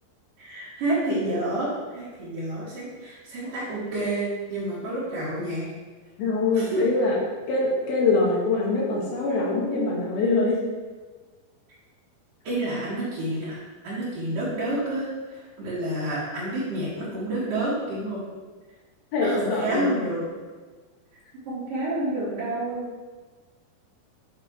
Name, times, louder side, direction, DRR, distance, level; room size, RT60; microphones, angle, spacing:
voice 1, 0.4-5.7 6.5-6.8 12.4-18.2 19.2-20.2 21.5-22.9, right 1 dB, 65° right, -12 dB, 3.6 m, -29 dB
voice 2, 6.2-7.2 7.5-10.6 19.1-19.9, left 3 dB, 75° left, -3 dB, 3.5 m, -23 dB
9.7 x 6.4 x 3.1 m, 1.4 s
omnidirectional pair, 4.4 m